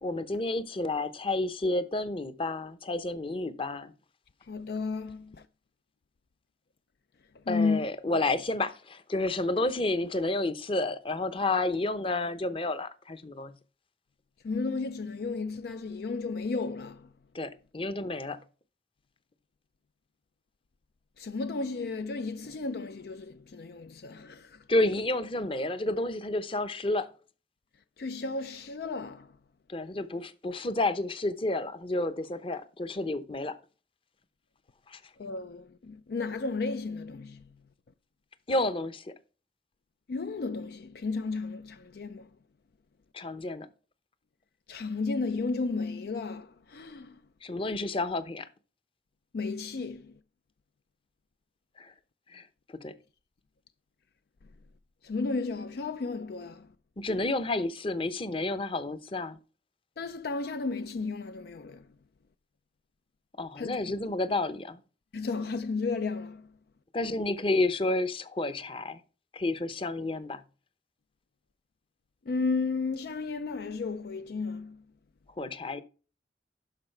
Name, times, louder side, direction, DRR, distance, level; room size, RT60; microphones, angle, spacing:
voice 1, 0.0-3.9 7.5-13.5 17.3-18.4 24.7-27.1 29.7-33.6 34.9-35.0 38.5-39.1 43.1-43.7 47.4-48.5 51.8-51.9 52.3-53.0 57.0-59.4 63.4-64.8 66.9-69.0 69.3-70.4 75.4-75.8, left 2 dB, 30° left, 0.8 m, -30 dB
voice 2, 4.4-5.5 7.3-7.9 14.4-17.1 21.2-24.6 28.0-29.3 35.2-37.6 40.1-42.3 44.7-47.2 49.3-50.2 55.0-56.7 60.0-61.9 63.6-64.1 65.1-66.5 72.3-74.8, left 4 dB, 60° left, 0.4 m, -33 dB
12.0 x 4.8 x 4.5 m
head